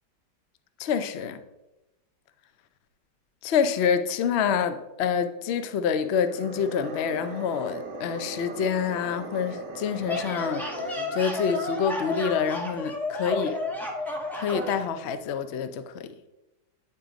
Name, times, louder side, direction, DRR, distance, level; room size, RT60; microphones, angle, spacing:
voice 1, 0.8-1.4 3.4-10.7 11.1-13.6 14.3-16.1, left 7 dB, 85° left, 10 dB, 0.5 m, -27 dB
sound 1, 6.1-11.4, right 2 dB, 80° right, 1.5 m, -38 dB
sound 2, 10.1-14.8, left 2 dB, ahead, 0.8 m, -31 dB
9.7 x 3.8 x 5.0 m, 0.98 s
omnidirectional pair, 1.9 m